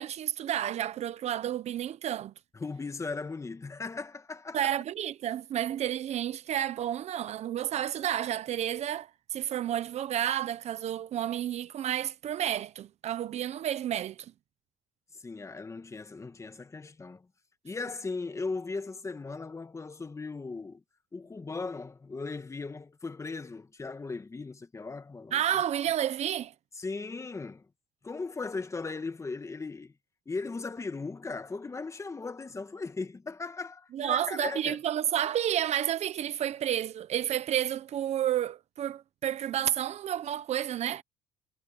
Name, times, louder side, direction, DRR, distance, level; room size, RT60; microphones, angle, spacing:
voice 1, 0.0-2.3 4.5-14.3 25.3-26.5 33.9-41.0, right 11 dB, 55° right, 1.1 m, -31 dB
voice 2, 2.5-4.7 15.2-17.3 17.6-20.8 21.1-25.4 26.8-27.7 28.0-29.9 30.2-34.8, left 3 dB, 20° left, 1.7 m, -37 dB
supercardioid pair, 85°, 13 cm